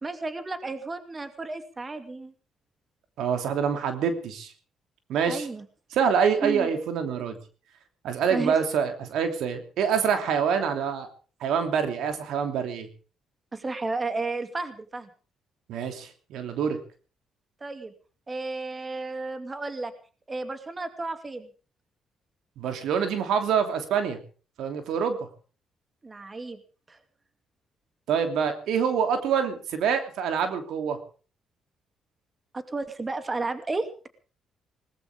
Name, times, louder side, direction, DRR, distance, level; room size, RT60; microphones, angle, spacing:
voice 1, 0.0-2.3 5.3-5.6 6.4-6.7 8.3-8.6 13.5-15.1 17.6-17.9 18.3-19.9 20.3-21.5 26.0-26.6 26.9-27.0 32.5-34.1, right 3 dB, 25° right, 8 dB, 2.6 m, -32 dB
voice 2, 3.2-4.5 5.1-5.5 5.9-7.4 8.0-11.1 11.4-12.9 15.7-16.8 22.6-24.2 24.6-25.3 28.1-31.0, right 7 dB, 80° right, 7 dB, 3.0 m, -26 dB
20.5 x 19.5 x 3.6 m, 0.38 s
cardioid pair, 90°, 0 cm